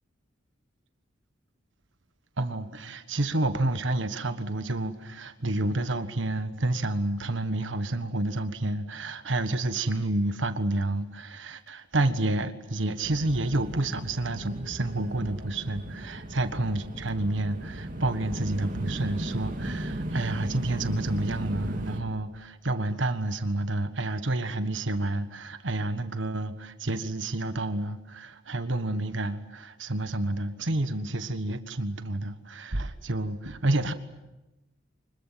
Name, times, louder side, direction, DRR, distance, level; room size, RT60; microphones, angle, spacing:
voice 1, 2.4-33.9, right 2 dB, 75° right, 1.4 m, -29 dB
sound 1, 13.0-22.0, right 1 dB, 45° right, 2.8 m, -36 dB
25.5 x 21.5 x 9.2 m
head